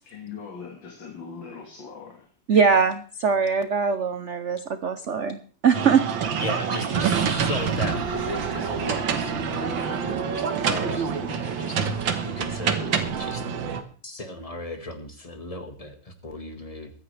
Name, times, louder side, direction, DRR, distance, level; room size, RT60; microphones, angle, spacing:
voice 1, 0.0-2.3 7.5-7.7, left 6 dB, 65° left, 2 dB, 2.5 m, -41 dB
voice 2, 2.5-6.4, right 6 dB, 90° right, 10 dB, 0.6 m, -22 dB
sound 1, 5.7-13.8, right 6 dB, 70° right, 1.9 m, -26 dB
voice 3, 6.4-13.5 14.0-16.9, left 1 dB, 20° left, 6 dB, 1.5 m, -36 dB
sound 2, 7.5-12.5, right 2 dB, 15° right, 6.8 m, -47 dB
23.0 x 9.7 x 3.3 m, 0.40 s
omnidirectional pair, 2.3 m